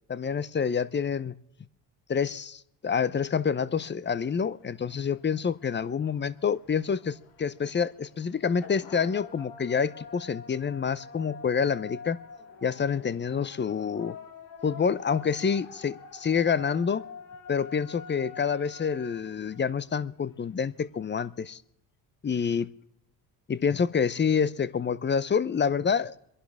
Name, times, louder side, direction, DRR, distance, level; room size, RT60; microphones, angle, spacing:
voice 1, 0.1-1.4 2.1-12.2 12.6-14.2 14.6-17.0 17.5-21.6 22.2-22.7 23.5-26.1, left 6 dB, 25° left, 17 dB, 0.7 m, -27 dB
sound 1, 4.0-21.6, left 5 dB, 90° left, 2.3 m, -47 dB
27.5 x 11.5 x 3.5 m, 0.79 s
supercardioid pair, 75°, 44 cm